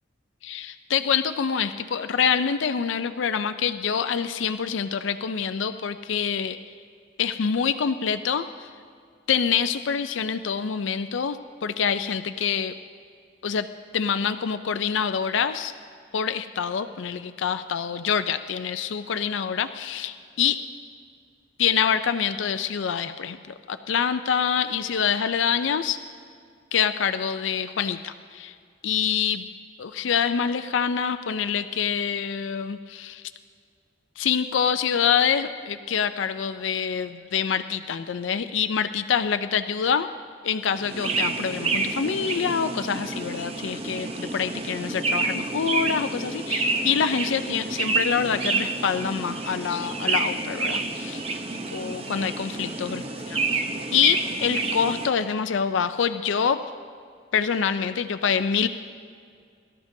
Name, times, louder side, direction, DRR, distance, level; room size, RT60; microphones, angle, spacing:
voice 1, 0.4-6.6 7.2-8.7 9.3-12.7 13.4-13.7 13.9-15.7 16.1-20.7 21.6-26.0 26.7-28.6 28.8-29.5 29.8-33.3 34.2-40.1 40.4-51.3 51.7-53.6 53.9-56.6 57.3-58.7, left 7 dB, 80° left, 10 dB, 0.5 m, -26 dB
sound 1, 40.8-55.1, right 3 dB, 30° right, 0.7 m, -29 dB
23.0 x 13.0 x 2.7 m, 2.2 s
head